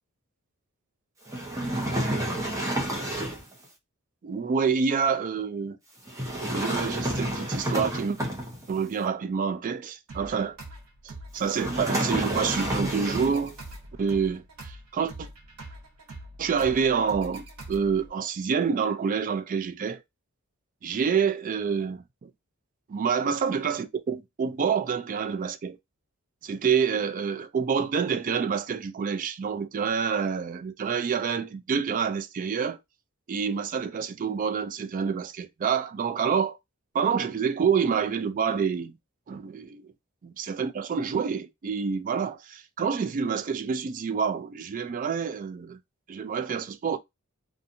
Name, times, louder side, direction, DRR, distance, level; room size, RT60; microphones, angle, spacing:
sound 1, 1.3-3.5 6.1-8.8 11.5-13.5, right 1 dB, 15° right, 0.7 m, -29 dB
voice 1, 4.2-5.8 6.5-8.2 8.7-10.6 11.0-13.6 14.0-15.3 16.4-20.0 20.8-22.3 22.9-25.8 26.4-32.8 33.3-36.6 36.9-39.0 39.3-39.8 40.2-45.8 46.1-47.0, right 6 dB, 35° right, 0.3 m, -27 dB
sound 2, 10.1-18.1, right 2 dB, 90° right, 0.9 m, -44 dB
2.7 x 2.4 x 2.5 m
head